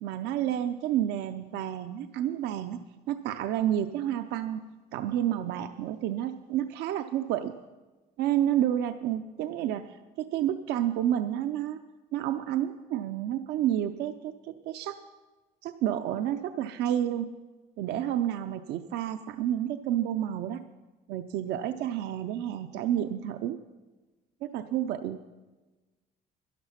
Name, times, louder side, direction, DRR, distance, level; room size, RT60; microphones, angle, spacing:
voice 1, 0.0-2.8 3.1-4.6 4.9-7.5 8.2-10.0 10.3-11.8 12.1-15.0 15.6-17.3 17.8-20.6 21.1-23.6 24.4-25.2, right 11 dB, 85° right, 9 dB, 0.5 m, -30 dB
12.0 x 11.0 x 5.7 m, 1.2 s
cardioid pair, 110°, 17 cm